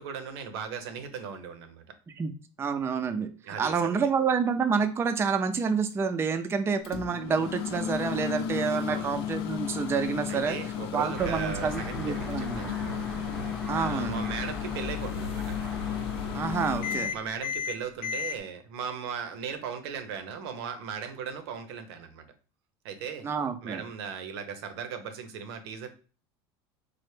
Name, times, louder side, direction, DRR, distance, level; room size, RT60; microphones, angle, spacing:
voice 1, 0.0-1.8 3.4-4.0 8.9-9.1 10.3-13.1 13.7-15.6 17.1-22.2 22.8-23.3 23.6-25.9, right 6 dB, 80° right, 8 dB, 0.6 m, -38 dB
voice 2, 2.6-3.3 3.6-10.6 10.9-12.7 13.7-14.2 16.3-17.1 23.2-23.8, right 6 dB, 20° right, 8 dB, 0.3 m, -28 dB
Microwave oven, 6.8-18.4, left 8 dB, 75° left, 0.5 m, -34 dB
sound 1, 11.2-16.8, left 2 dB, ahead, 0.8 m, -38 dB
3.1 x 2.0 x 3.2 m, 0.37 s
supercardioid pair, 100°, 13 cm